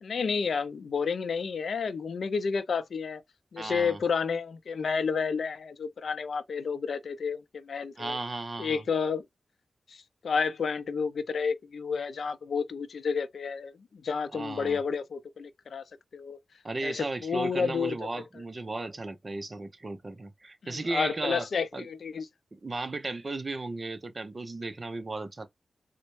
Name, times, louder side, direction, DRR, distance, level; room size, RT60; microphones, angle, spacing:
voice 1, 0.0-3.2 3.5-8.2 8.6-9.2 9.9-15.8 16.1-16.4 16.8-18.0 20.6-22.3, left 5 dB, 75° left, 0.5 m, -30 dB
voice 2, 3.6-4.0 8.0-8.8 14.3-14.8 16.6-21.5 21.7-21.9 22.5-25.5, right 2 dB, 35° right, 0.7 m, -35 dB
4.1 x 2.1 x 3.1 m
wide cardioid pair, 100°, 0 cm